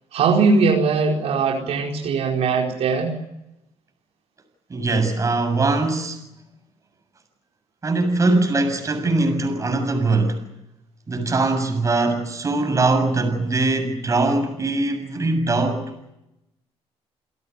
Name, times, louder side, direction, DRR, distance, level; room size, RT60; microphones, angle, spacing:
voice 1, 0.1-3.2, right 4 dB, 70° right, 4.6 m, -20 dB
voice 2, 4.7-6.2 7.8-10.4 11.1-15.9, right 3 dB, 30° right, 7.1 m, -21 dB
29.0 x 17.5 x 9.6 m
cardioid pair, 105°, 11 cm